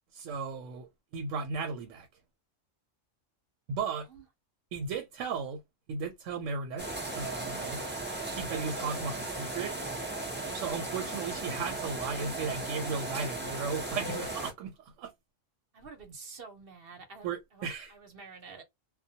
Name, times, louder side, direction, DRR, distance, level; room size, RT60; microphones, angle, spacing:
voice 1, 0.1-0.9 1.1-2.1 3.7-4.1 4.7-5.6 5.9-6.9 7.1-7.8 8.3-9.8 10.5-15.1 17.2-17.9, right 5 dB, 90° right, 1.0 m, -35 dB
sound 1, 6.8-14.5, right 2 dB, 15° right, 0.4 m, -36 dB
voice 2, 10.2-10.6 15.7-18.6, right 4 dB, 55° right, 0.9 m, -49 dB
2.2 x 2.1 x 2.7 m
omnidirectional pair, 1.3 m